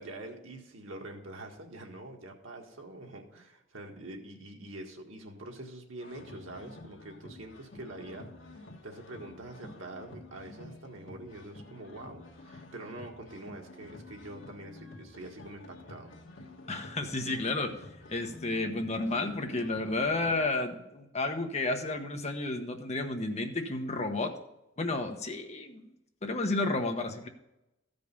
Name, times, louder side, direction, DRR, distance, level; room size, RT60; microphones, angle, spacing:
voice 1, 0.0-16.1, right 1 dB, 85° right, 2 dB, 1.7 m, -45 dB
sound 1, 6.0-20.7, left 2 dB, 70° left, 1.5 m, -50 dB
voice 2, 16.7-17.7 18.1-24.3 24.8-25.9 26.2-27.3, left 2 dB, 35° left, 5 dB, 1.1 m, -31 dB
14.5 x 5.3 x 5.4 m, 0.91 s
head